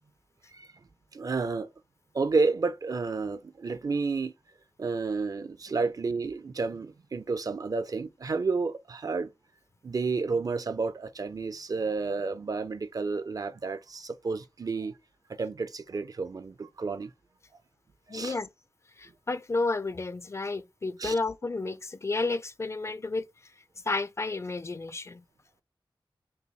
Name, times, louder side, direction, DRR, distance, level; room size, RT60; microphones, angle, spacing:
voice 1, 1.1-1.7 2.1-4.3 4.8-9.3 9.8-14.9 15.4-17.1 18.1-18.4 21.0-21.1, right 4 dB, 45° right, 0.4 m, -31 dB
voice 2, 18.1-18.5 19.0-23.5 23.8-25.2, left 3 dB, 35° left, 0.3 m, -31 dB
5.4 x 2.2 x 3.1 m
wide cardioid pair, 110°, 9 cm